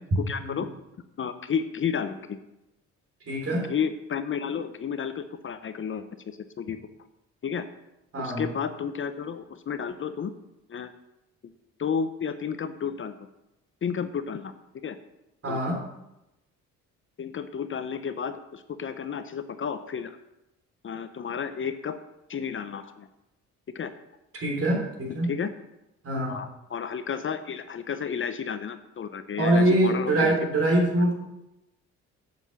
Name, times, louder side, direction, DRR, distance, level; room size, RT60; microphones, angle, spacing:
voice 1, 0.2-0.7 1.2-2.4 3.5-6.8 7.4-7.7 8.2-10.3 10.7-10.9 11.4-11.5 11.8-13.2 13.8-14.5 14.8-15.0 15.5-15.6 17.2-20.2 20.8-22.0 22.3-23.1 23.7-23.9 25.3-25.5 26.3-30.4, left 7 dB, 40° left, 10 dB, 0.7 m, -32 dB
voice 2, 3.3-3.7 8.1-8.4 15.4-15.8 24.3-25.3 26.0-26.4 29.4-31.1, right 1 dB, 50° right, 0 dB, 3.7 m, -24 dB
7.8 x 7.2 x 6.9 m, 0.92 s
cardioid pair, 90°, 30 cm